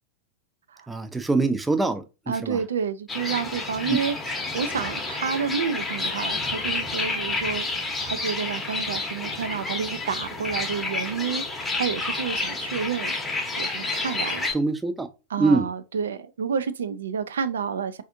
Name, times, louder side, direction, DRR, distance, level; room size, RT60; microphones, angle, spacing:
voice 1, 0.9-2.6 3.9-4.0 14.5-15.1 15.4-15.7, right 3 dB, 10° right, 0.4 m, -24 dB
voice 2, 2.3-7.7 8.0-11.4 11.8-13.1 13.6-14.5 15.3-18.0, right 6 dB, 70° right, 0.3 m, -29 dB
sound 1, 3.1-14.5, left 3 dB, 10° left, 0.8 m, -30 dB
4.0 x 2.5 x 2.6 m
figure-of-eight pair, 95°, 0 cm